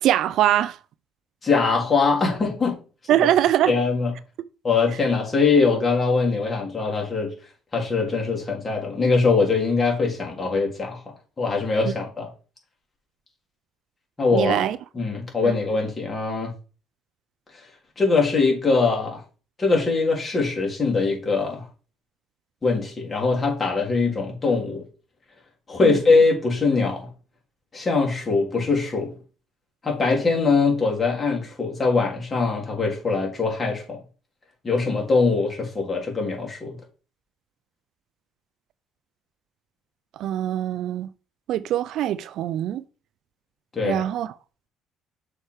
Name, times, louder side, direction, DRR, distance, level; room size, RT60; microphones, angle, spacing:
voice 1, 0.0-0.8 3.1-3.7 11.8-11.9 14.3-14.8 15.4-15.5 25.8-26.0 40.2-41.1 41.5-42.8 43.8-44.3, right 12 dB, 70° right, 0.4 m, -22 dB
voice 2, 1.4-2.8 3.7-4.1 4.6-7.3 7.7-11.0 11.4-12.3 14.2-14.7 14.9-16.5 18.0-19.2 19.6-21.7 22.6-24.8 25.7-27.1 27.7-29.1 29.8-34.0 34.6-36.8 43.7-44.0, left 4 dB, 30° left, 3.5 m, -22 dB
6.6 x 4.2 x 4.9 m
supercardioid pair, 70°, 0 cm